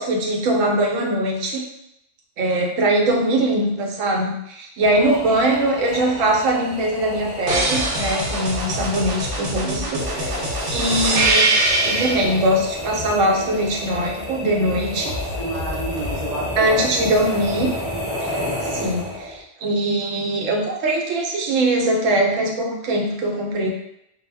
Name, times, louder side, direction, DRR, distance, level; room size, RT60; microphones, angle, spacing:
voice 1, 0.0-1.7 2.4-10.5 10.7-11.5 11.8-15.1 16.6-17.7 18.2-18.4 18.7-23.7, right 1 dB, 85° right, 1 dB, 0.9 m, -21 dB
sound 1, 4.8-19.4, left 1 dB, 15° right, 0.6 m, -31 dB
sound 2, 7.5-12.3 15.1-16.1, right 2 dB, 55° right, 0.6 m, -23 dB
voice 2, 15.0-17.1, right 2 dB, 40° left, -8 dB, 0.4 m, -31 dB
2.2 x 2.0 x 3.2 m, 0.80 s
omnidirectional pair, 1.3 m